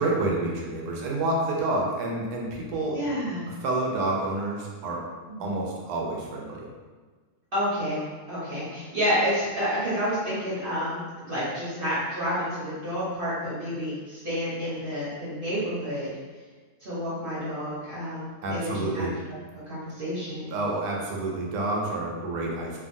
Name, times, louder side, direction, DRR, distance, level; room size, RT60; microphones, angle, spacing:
voice 1, 0.0-3.0 3.5-5.0 5.4-6.7 18.4-19.2 20.5-22.8, right 2 dB, 75° right, -2 dB, 1.1 m, -28 dB
voice 2, 2.9-3.5 5.3-5.5 7.5-16.1 16.8-19.1 19.7-20.5, equal, 45° right, -10 dB, 0.8 m, -29 dB
2.8 x 2.5 x 2.6 m, 1.4 s
omnidirectional pair, 1.7 m